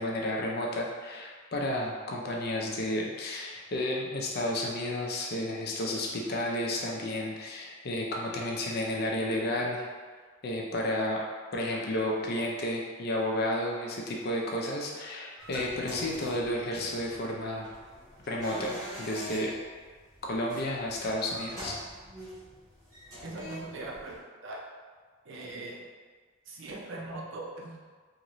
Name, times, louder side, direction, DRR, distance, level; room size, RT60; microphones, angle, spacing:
voice 1, 0.0-9.8 10.4-11.2 11.5-17.7 18.3-19.5 20.2-21.8, left 1 dB, 50° left, -1 dB, 0.5 m, -32 dB
sound 1, 15.4-24.2, equal, 20° right, 0.9 m, -44 dB
voice 2, 23.2-24.6 25.2-25.8 26.5-27.8, right 2 dB, 65° right, -2 dB, 0.6 m, -40 dB
2.9 x 2.6 x 3.0 m, 1.5 s
head